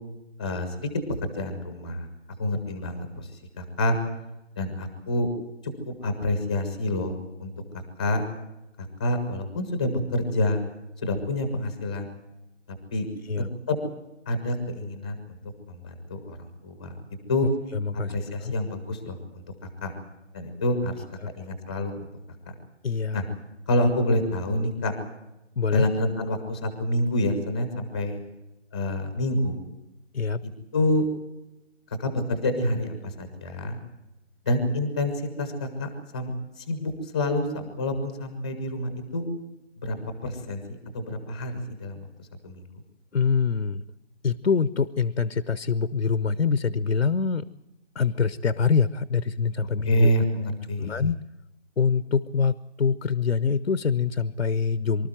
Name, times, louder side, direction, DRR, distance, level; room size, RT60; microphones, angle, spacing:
voice 1, 0.4-0.9 1.2-2.1 2.4-3.3 3.6-4.0 4.6-5.3 5.9-7.5 8.0-8.2 9.0-10.6 11.0-12.1 12.9-13.1 13.7-13.8 14.3-15.4 15.7-16.4 16.6-16.9 17.3-17.5 18.1-19.4 19.8-19.9 20.3-21.0 21.4-22.0 23.1-23.2 23.7-24.9 25.7-28.2 28.7-29.6 30.4-31.1 32.0-33.8 34.4-35.1 35.4-36.3 36.6-39.3 39.8-40.0 40.2-42.6 49.9-51.0, left 1 dB, 5° left, 8 dB, 0.9 m, -27 dB
voice 2, 17.7-18.1 18.4-18.5 21.2-21.3 22.8-23.2 25.6-25.9 30.1-30.4 43.1-43.8 44.2-47.5 48.0-50.1 50.8-51.2 51.8-55.1, left 5 dB, 70° left, 17 dB, 0.9 m, -25 dB
24.0 x 13.0 x 9.0 m, 0.95 s
figure-of-eight pair, 165°, 36 cm